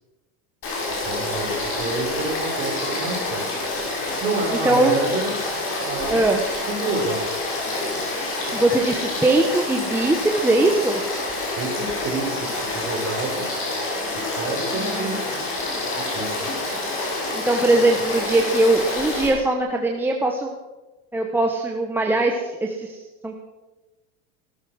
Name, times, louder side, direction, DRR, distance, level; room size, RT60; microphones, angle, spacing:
Frog / Stream, 0.6-19.3, left 2 dB, 35° left, 5.9 m, -27 dB
voice 1, 1.0-3.5 4.2-5.3 5.8-6.2 6.7-7.2 11.6-13.5 14.1-15.2 16.0-16.8, right 3 dB, 30° right, 1 dB, 4.4 m, -29 dB
voice 2, 4.5-5.0 6.1-6.4 8.5-11.0 14.7-15.2 17.3-20.5 21.1-23.3, right 2 dB, 5° right, 1 dB, 1.0 m, -21 dB
17.5 x 13.0 x 6.2 m, 1.2 s
supercardioid pair, 155°, 38 cm